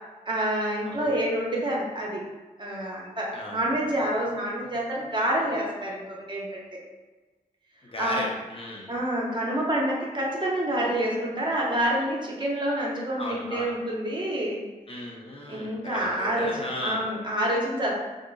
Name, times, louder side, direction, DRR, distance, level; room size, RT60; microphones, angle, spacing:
voice 1, 0.3-2.2 2.6-6.8 8.0-8.2 8.9-14.6 15.5-18.0, right 1 dB, 30° right, -4 dB, 1.1 m, -28 dB
voice 2, 3.3-3.7 7.8-8.9 13.2-13.7 14.9-17.0, left 1 dB, 40° left, -2 dB, 0.7 m, -35 dB
4.7 x 2.5 x 2.3 m, 1.2 s
cardioid pair, 60°, 15 cm